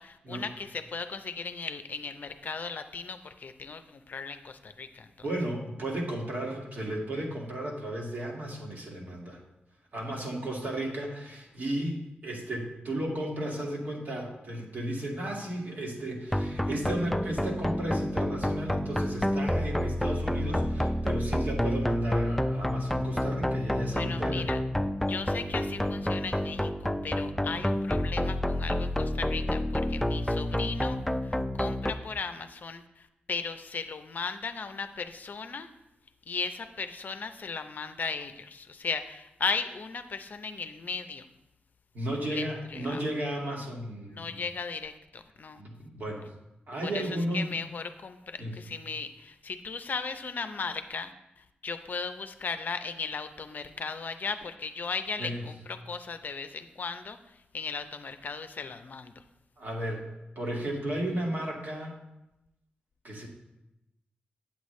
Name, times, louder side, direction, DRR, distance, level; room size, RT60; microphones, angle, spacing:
voice 1, 0.0-5.1 23.9-24.6 25.1-31.0 31.2-35.7 36.3-41.2 42.3-42.5 42.7-43.0 44.1-45.6 46.8-47.0 47.3-51.1 51.6-57.2 57.5-59.1, left 5 dB, 55° left, 9 dB, 0.6 m, -36 dB
voice 2, 5.2-9.4 9.9-24.5 41.9-44.4 45.6-46.3 46.7-47.6 48.4-48.6 55.2-55.5 59.6-61.9 63.0-63.3, right 1 dB, 55° right, -2 dB, 2.0 m, -34 dB
sound 1, 16.3-31.9, left 1 dB, 5° left, 0.4 m, -29 dB
8.4 x 8.1 x 3.2 m, 0.91 s
cardioid pair, 75°, 4 cm